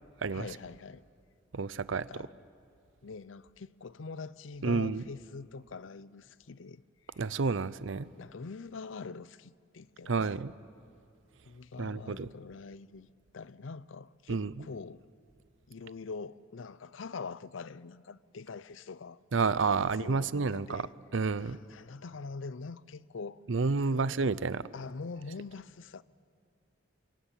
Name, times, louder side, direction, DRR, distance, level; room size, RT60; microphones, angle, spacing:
voice 1, 0.3-1.0 1.9-2.3 3.0-6.8 8.2-10.2 11.4-13.1 13.3-15.0 15.7-19.2 19.6-20.9 21.3-23.4 23.8-24.1 24.7-26.0, left 4 dB, 80° left, 0.6 m, -44 dB
voice 2, 1.5-2.1 4.6-5.0 7.2-8.1 10.1-10.5 11.8-12.3 14.3-14.6 19.3-20.8 21.1-21.6 23.5-24.7, right 4 dB, 75° right, 0.6 m, -30 dB
26.5 x 22.5 x 9.1 m
head